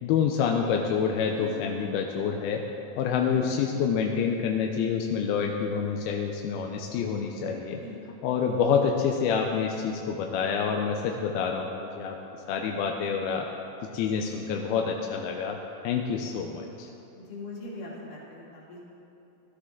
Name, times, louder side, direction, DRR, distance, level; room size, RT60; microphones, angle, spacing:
voice 1, 0.0-2.6 3.0-7.8 8.2-12.2 12.5-13.5 13.9-15.6 15.8-16.9, left 6 dB, 85° left, 2 dB, 2.6 m, -27 dB
voice 2, 17.1-18.8, left 2 dB, 60° left, -5 dB, 3.9 m, -42 dB
17.0 x 13.0 x 3.7 m, 2.8 s
omnidirectional pair, 4.4 m